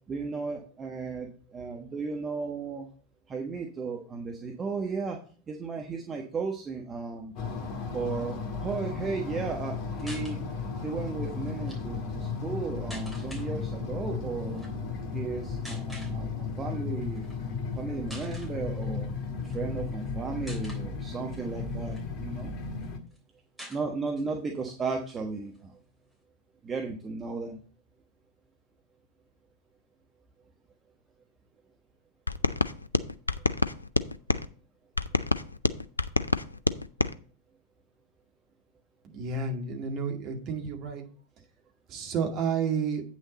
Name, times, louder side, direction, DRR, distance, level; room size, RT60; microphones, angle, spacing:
voice 1, 0.1-2.9 3.3-5.2 5.5-7.3 7.9-10.4 10.8-14.6 15.1-17.2 17.8-19.1 19.4-22.5 23.7-25.7 26.6-27.6, right 4 dB, 20° right, 2 dB, 1.2 m, -35 dB
sound 1, 7.4-23.0, left 5 dB, 40° left, 1.5 m, -35 dB
sound 2, 10.0-10.4 11.5-11.8 12.9-13.5 14.5-14.7 15.6-16.1 17.2-17.4 17.7-17.8 18.1-18.5 19.4-20.0 20.5-20.9 21.5-22.5 22.8-22.9 23.1-23.2 23.6-24.3 24.7-24.8 25.1-26.1, equal, ahead, 3.3 m, -46 dB
sound 3, 32.3-34.5 35.0-37.1, left 2 dB, 80° left, 0.4 m, -27 dB
voice 2, 39.0-41.0 41.9-43.0, right 5 dB, 35° right, 3 dB, 2.1 m, -31 dB
8.9 x 6.2 x 4.1 m, 0.41 s
figure-of-eight pair, 90°, 0 cm